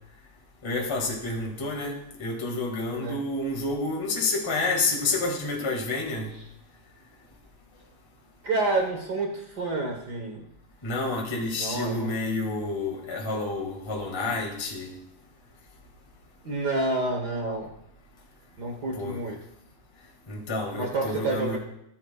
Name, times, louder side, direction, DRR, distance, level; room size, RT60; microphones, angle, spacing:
voice 1, 0.6-6.3 10.8-14.9 18.9-19.2 20.3-21.6, left 3 dB, 10° left, -1 dB, 1.4 m, -29 dB
voice 2, 8.4-10.5 11.6-12.1 16.4-17.7 18.6-19.4 20.8-21.6, right 2 dB, 70° right, 1 dB, 0.9 m, -29 dB
18.5 x 9.6 x 2.3 m, 0.80 s
omnidirectional pair, 3.7 m